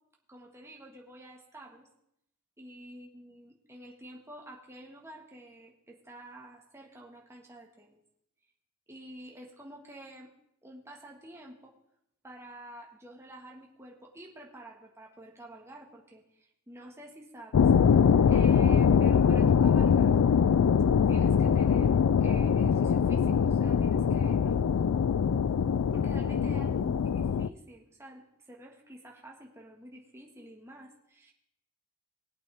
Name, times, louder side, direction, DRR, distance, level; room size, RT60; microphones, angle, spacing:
voice 1, 0.3-1.9 2.6-8.0 8.9-10.3 10.6-11.7 12.2-17.7 18.3-20.2 21.1-21.9 22.2-24.9 25.9-31.3, right 1 dB, 10° right, -1 dB, 1.6 m, -49 dB
sound 1, 17.5-27.5, left 7 dB, 75° left, 0.4 m, -23 dB
19.0 x 8.4 x 3.5 m, 0.79 s
head